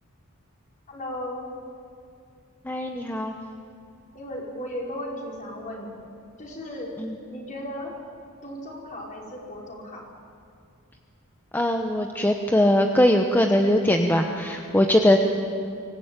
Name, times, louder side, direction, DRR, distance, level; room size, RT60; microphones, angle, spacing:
voice 1, 0.9-1.5 4.1-6.0 6.4-6.9 7.3-7.9 8.4-10.1, left 1 dB, 35° left, -2 dB, 5.1 m, -35 dB
voice 2, 2.6-3.3 7.0-7.1 11.5-15.2, left 1 dB, 10° left, 3 dB, 0.9 m, -21 dB
24.5 x 16.0 x 9.0 m, 2.5 s
head